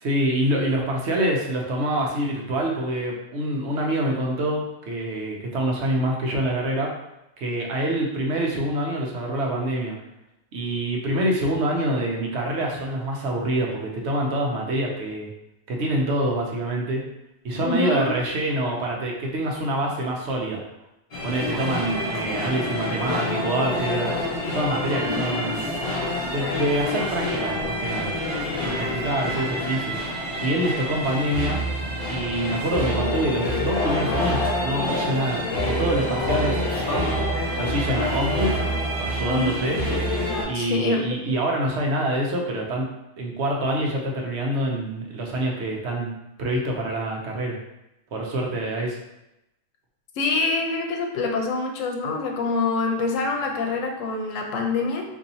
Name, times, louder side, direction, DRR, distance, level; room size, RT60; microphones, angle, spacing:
voice 1, 0.0-6.9 7.4-10.0 10.5-15.3 15.7-17.0 17.4-20.6 21.2-24.2 24.5-25.7 26.3-28.1 28.7-30.0 30.4-31.6 32.1-37.2 37.6-38.5 39.0-39.8 40.5-42.9 43.2-46.1 46.4-47.6 48.1-49.0, right 1 dB, 65° right, -1 dB, 0.9 m, -26 dB
voice 2, 17.6-18.1 25.0-25.3 39.3-39.6 40.5-41.3 50.2-55.0, left 3 dB, 80° left, 2 dB, 1.0 m, -25 dB
sound 1, 21.1-40.4, left 1 dB, 50° left, 1.2 m, -27 dB
3.9 x 2.6 x 2.7 m, 0.90 s
omnidirectional pair, 1.3 m